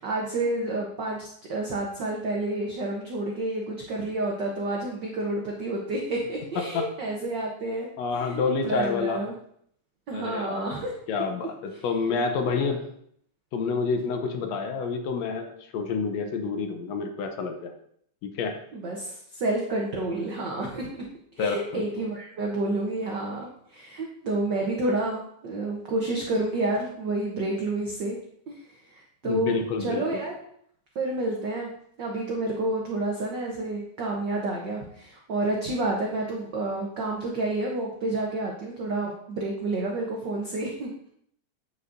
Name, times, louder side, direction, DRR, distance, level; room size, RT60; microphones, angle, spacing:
voice 1, 0.0-7.9 8.2-9.3 10.1-10.9 11.4-11.5 11.8-11.9 12.4-12.7 18.7-20.9 21.3-28.2 28.5-28.6 28.9-30.3 30.9-31.7 32.0-41.1, right 2 dB, 75° right, -1 dB, 1.0 m, -29 dB
voice 2, 6.6-6.9 8.0-9.2 10.1-10.7 11.1-12.8 13.5-17.7 18.2-18.6 21.4-21.9 29.2-30.2, left 4 dB, 75° left, 5 dB, 1.8 m, -28 dB
8.3 x 7.0 x 2.5 m, 0.67 s
omnidirectional pair, 3.3 m